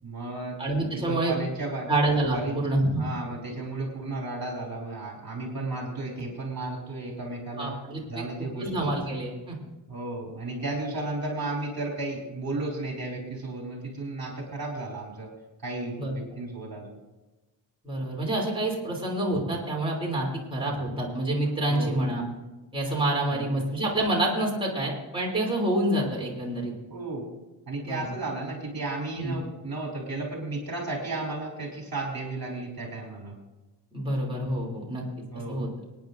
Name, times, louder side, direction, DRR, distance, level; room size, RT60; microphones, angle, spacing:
voice 1, 0.0-0.6 0.9-1.9 2.3-2.6 2.9-7.7 8.1-8.9 9.9-15.3 15.6-17.0 21.7-22.1 23.3-23.7 26.9-27.3 27.7-33.3 35.3-35.7, right 2 dB, 50° right, 0 dB, 3.1 m, -34 dB
voice 2, 0.6-1.3 1.9-3.0 7.6-9.6 16.0-16.1 17.8-22.2 22.7-26.7 27.8-28.0 29.2-29.3 33.9-35.0 35.3-35.7, right 1 dB, 10° right, -4 dB, 3.1 m, -27 dB
26.0 x 9.5 x 2.6 m, 1.1 s
wide cardioid pair, 140°, 45 cm